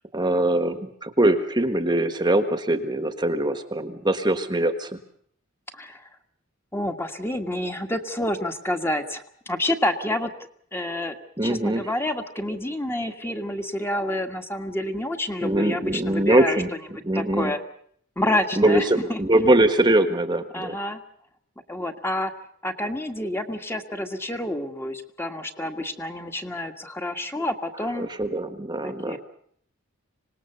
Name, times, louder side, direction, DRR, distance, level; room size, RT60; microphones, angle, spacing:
voice 1, 0.1-4.9 11.4-11.9 15.4-16.7 17.0-17.5 18.6-20.7 28.0-29.2, right 1 dB, 20° right, 8 dB, 1.4 m, -22 dB
voice 2, 5.7-6.0 6.7-10.3 10.7-11.2 11.4-16.6 17.2-17.6 18.2-19.2 20.5-21.0 21.7-22.3 22.6-28.1 28.8-29.2, left 1 dB, 10° left, 5 dB, 1.7 m, -28 dB
25.5 x 19.5 x 6.9 m, 0.64 s
head